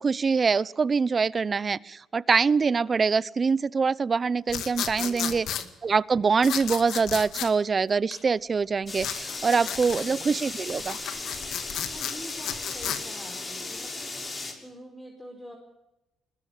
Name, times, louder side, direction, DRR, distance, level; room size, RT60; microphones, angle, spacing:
voice 1, 0.0-5.5 5.8-11.0, right 5 dB, 35° right, 20 dB, 0.7 m, -24 dB
sound 1, 4.5-5.6 6.4-7.5 9.0-10.1 10.7-13.0, left 9 dB, 80° left, 2.1 m, -33 dB
voice 2, 5.0-5.7 9.8-10.3 11.9-15.6, equal, ahead, 2 dB, 4.8 m, -46 dB
sound 2, 6.6-6.8 7.1-7.2 7.5-8.3 8.7-8.8 9.0-9.4 9.8-12.1, left 5 dB, 50° left, 4.5 m, -49 dB
sound 3, 8.9-14.5, left 3 dB, 30° left, 6.4 m, -36 dB
22.5 x 21.0 x 7.4 m, 0.95 s
cardioid pair, 90°, 0 cm